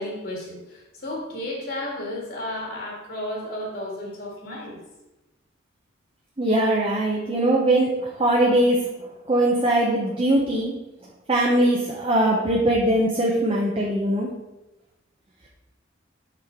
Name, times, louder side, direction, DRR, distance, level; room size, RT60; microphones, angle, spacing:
voice 1, 0.0-4.8, left 1 dB, 55° left, -2 dB, 2.0 m, -33 dB
voice 2, 6.4-7.9 8.2-8.8 9.3-10.7 11.3-14.3, right 1 dB, 30° right, -2 dB, 0.9 m, -21 dB
6.1 x 5.2 x 4.5 m, 1.0 s
head